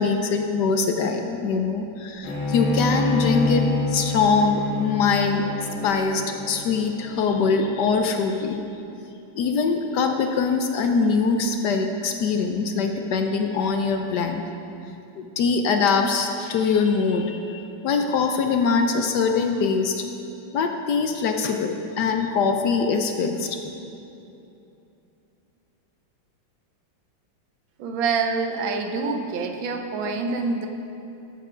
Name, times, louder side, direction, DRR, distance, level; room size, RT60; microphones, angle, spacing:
voice 1, 0.0-5.4 5.8-8.6 9.4-14.4 15.2-20.0 20.5-23.6, left 5 dB, 70° left, 5 dB, 1.1 m, -23 dB
Bowed string instrument, 2.2-7.6, left 2 dB, 90° left, 2.3 m, -27 dB
voice 2, 27.8-30.7, right 4 dB, 80° right, 5 dB, 1.6 m, -26 dB
13.5 x 6.8 x 5.0 m, 2.8 s
omnidirectional pair, 2.1 m